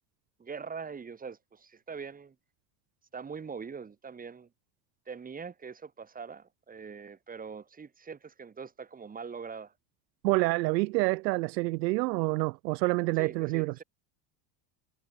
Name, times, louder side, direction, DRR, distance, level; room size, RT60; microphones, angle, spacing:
voice 1, 0.4-2.4 3.1-4.5 5.1-9.7 13.2-13.8, right 5 dB, 15° right, 3.9 m, -42 dB
voice 2, 10.2-13.7, right 23 dB, 85° right, 1.4 m, -27 dB
supercardioid pair, 150°, 49 cm